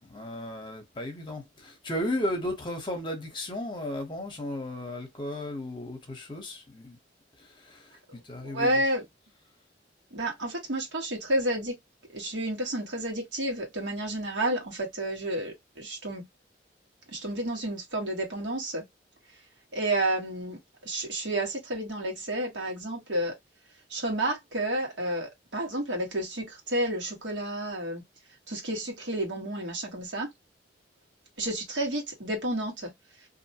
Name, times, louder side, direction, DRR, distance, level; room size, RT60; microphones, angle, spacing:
voice 1, 0.0-7.0 7.6-7.9 8.3-8.8, left 1 dB, 25° left, 0.9 m, -34 dB
voice 2, 8.5-9.0 10.1-11.7 12.1-16.2 17.1-18.8 19.7-20.6 20.8-23.3 23.9-28.0 28.5-30.3 31.4-32.9, right 1 dB, 80° right, 1.3 m, -30 dB
2.6 x 2.1 x 2.7 m
head